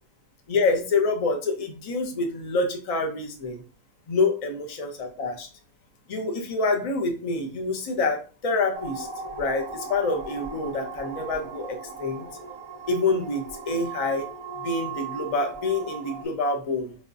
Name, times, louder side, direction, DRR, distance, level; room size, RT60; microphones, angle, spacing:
voice 1, 0.5-3.6 4.1-5.5 6.1-9.1 9.4-12.2 12.9-14.3 14.6-17.0, left 3 dB, 40° left, 3 dB, 0.5 m, -27 dB
sound 1, 8.7-16.2, right 4 dB, 45° right, 0.7 m, -38 dB
4.9 x 2.3 x 2.6 m, 0.36 s
omnidirectional pair, 1.4 m